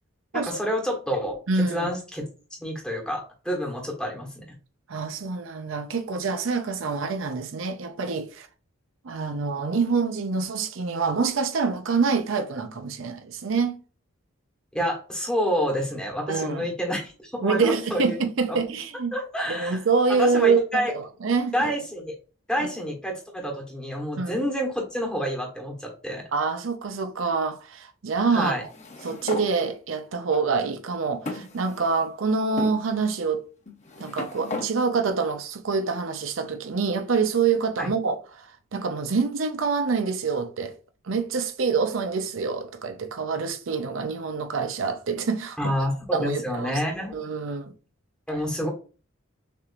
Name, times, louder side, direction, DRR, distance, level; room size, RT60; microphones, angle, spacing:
voice 1, 0.3-1.4 1.7-2.2 2.6-4.4 14.7-18.1 18.5-18.6 19.1-19.8 20.1-20.9 21.5-22.1 22.5-26.2 28.3-28.6 37.8-37.9 45.6-47.1 48.3-48.7, equal, 5° left, 1.3 m, -28 dB
voice 2, 1.5-1.9 4.9-8.5 9.0-13.8 16.3-16.6 17.4-19.1 19.5-21.7 22.6-22.7 24.2-24.4 26.3-28.7 29.0-33.5 34.0-40.7 41.0-45.7 46.1-46.7 47.1-47.7, right 4 dB, 75° right, 0.6 m, -26 dB
sound 1, 28.7-29.5 30.3-30.4 31.3-32.1 32.6-32.8 33.7-34.7, left 3 dB, 35° left, 0.8 m, -35 dB
6.7 x 3.0 x 2.5 m
head